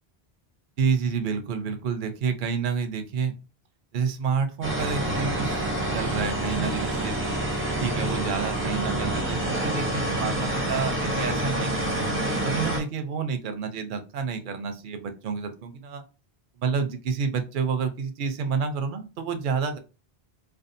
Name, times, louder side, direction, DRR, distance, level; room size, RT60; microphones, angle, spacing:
voice 1, 0.8-3.3 3.9-5.6 5.9-7.3 7.8-11.9 12.4-16.0 16.6-19.8, right 6 dB, 60° right, 8 dB, 0.6 m, -29 dB
sound 1, 4.6-12.8, right 1 dB, 15° right, 0.5 m, -27 dB
2.5 x 2.3 x 2.5 m, 0.31 s
omnidirectional pair, 1.1 m